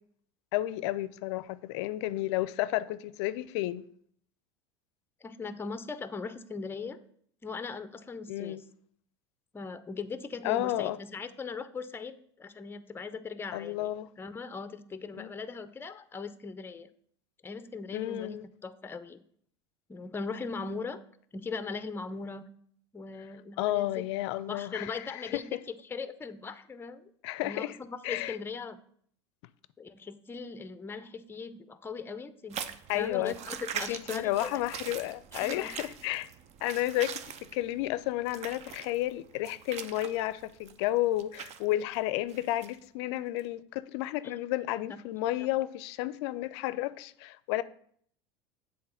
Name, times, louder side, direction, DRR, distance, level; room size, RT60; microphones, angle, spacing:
voice 1, 0.5-3.8 8.3-8.6 10.4-11.0 13.5-14.1 15.2-15.3 17.9-18.5 23.6-25.4 27.2-27.8 28.0-28.4 32.9-33.3 33.9-36.3 36.6-37.2 37.5-47.6, left 15 dB, 70° left, 0.4 m, -32 dB
voice 2, 5.2-7.0 7.4-8.6 9.5-13.9 14.2-16.9 17.4-18.4 18.6-19.2 19.9-21.0 21.3-22.4 22.9-24.0 24.5-27.0 27.4-28.8 29.8-32.6 32.9-34.6 35.3-35.8 44.2-44.3, left 4 dB, 15° left, 0.5 m, -39 dB
sound 1, 32.5-41.7 42.3-42.8 43.4-43.5, right 8 dB, 50° right, 0.7 m, -42 dB
7.6 x 3.7 x 5.6 m
hypercardioid pair, 90°, 15 cm